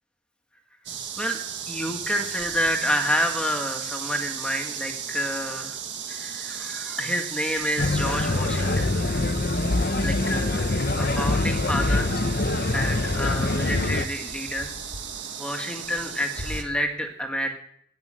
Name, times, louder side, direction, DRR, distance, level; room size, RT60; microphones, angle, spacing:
sound 1, 0.9-16.6, right 7 dB, 65° right, 1.7 m, -35 dB
voice 1, 1.7-5.8 6.1-9.2 9.9-12.1 12.7-14.7 15.4-17.5, equal, 5° left, 4 dB, 1.8 m, -29 dB
sound 2, 7.8-14.1, left 2 dB, 50° left, 0.8 m, -24 dB
13.0 x 9.8 x 7.7 m, 0.71 s
head